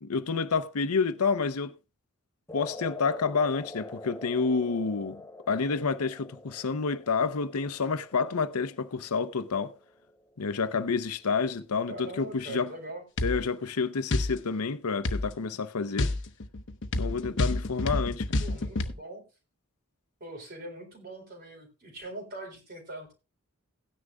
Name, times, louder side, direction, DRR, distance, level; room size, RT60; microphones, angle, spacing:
voice 1, 0.0-1.7 2.5-5.2 5.5-9.7 10.4-12.7 13.2-16.1 17.0-18.3, left 5 dB, 85° left, 0.7 m, -29 dB
sound 1, 2.5-10.8, left 2 dB, 10° left, 0.7 m, -45 dB
voice 2, 11.9-13.0 18.4-19.2 20.2-23.1, right 1 dB, 45° right, 4.1 m, -42 dB
sound 2, 13.2-13.4 14.1-14.3 15.0-15.3 16.0-18.9, left 2 dB, 55° left, 0.9 m, -28 dB
17.0 x 9.8 x 2.3 m
head